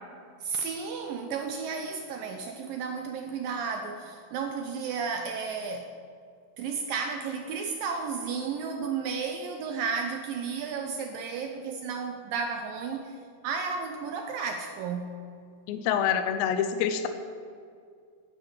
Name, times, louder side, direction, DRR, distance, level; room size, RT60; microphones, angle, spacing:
voice 1, 0.4-5.9 6.6-13.2 13.4-15.2, right 5 dB, 85° right, 4 dB, 2.0 m, -33 dB
voice 2, 15.7-17.1, left 8 dB, 80° left, 9 dB, 2.9 m, -26 dB
12.0 x 8.7 x 7.9 m, 2.2 s
omnidirectional pair, 5.0 m